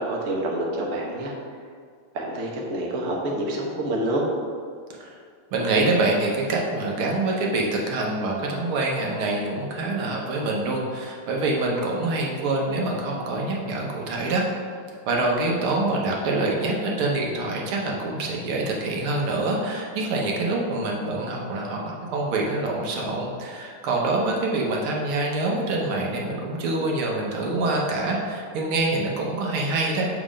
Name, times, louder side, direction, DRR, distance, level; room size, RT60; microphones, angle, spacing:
voice 1, 0.0-1.3 2.1-4.3, right 1 dB, 45° right, -1 dB, 1.2 m, -27 dB
voice 2, 5.5-14.4 15.1-30.1, right 2 dB, 75° right, -1 dB, 1.9 m, -25 dB
7.4 x 4.3 x 5.0 m, 2.1 s
omnidirectional pair, 2.3 m